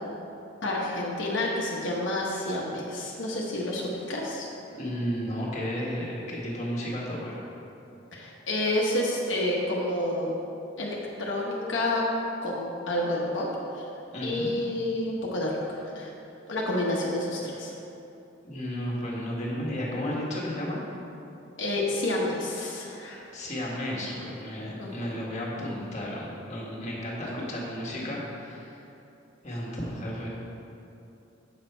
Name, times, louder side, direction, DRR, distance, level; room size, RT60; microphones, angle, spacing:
voice 1, 0.6-4.5 8.1-10.3 10.8-12.0 12.4-13.5 13.7-13.9 14.2-16.1 16.5-17.7 21.6-23.2 24.8-25.2, left 1 dB, 85° left, -4 dB, 1.0 m, -29 dB
voice 2, 4.7-7.5 14.1-14.5 18.4-20.8 23.3-28.8 29.4-30.3, equal, 40° left, -5 dB, 1.6 m, -33 dB
7.0 x 6.2 x 4.4 m, 2.8 s
head